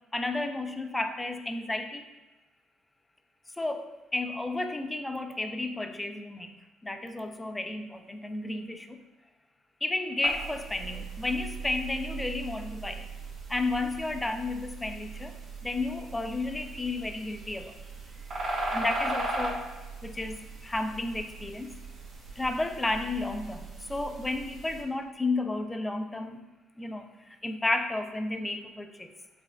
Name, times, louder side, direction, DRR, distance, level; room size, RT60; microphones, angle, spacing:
voice 1, 0.1-2.1 3.5-6.5 6.8-9.0 9.8-13.1 13.5-15.4 15.6-17.8 18.7-19.6 20.0-21.7 22.4-26.4 26.8-29.1, left 2 dB, 15° left, 7 dB, 0.3 m, -32 dB
sound 1, 10.2-24.8, right 2 dB, 55° right, 1.3 m, -38 dB
4.8 x 3.3 x 2.4 m, 1.1 s
cardioid pair, 90°, 0 cm